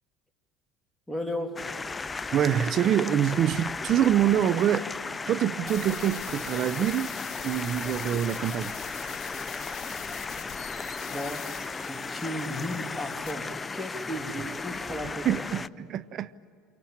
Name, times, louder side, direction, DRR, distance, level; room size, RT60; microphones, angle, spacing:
voice 1, 1.1-1.7 11.0-11.5 11.8-15.3, left 1 dB, ahead, 2.7 m, -35 dB
sound 1, 1.6-15.7, left 4 dB, 20° left, 0.6 m, -35 dB
voice 2, 2.3-4.9 5.3-7.1 7.4-8.7 15.2-16.3, right 10 dB, 50° right, 0.7 m, -25 dB
sound 2, 5.7-15.0, left 9 dB, 40° left, 5.1 m, -43 dB
28.0 x 24.0 x 8.9 m
supercardioid pair, 90°, 0 cm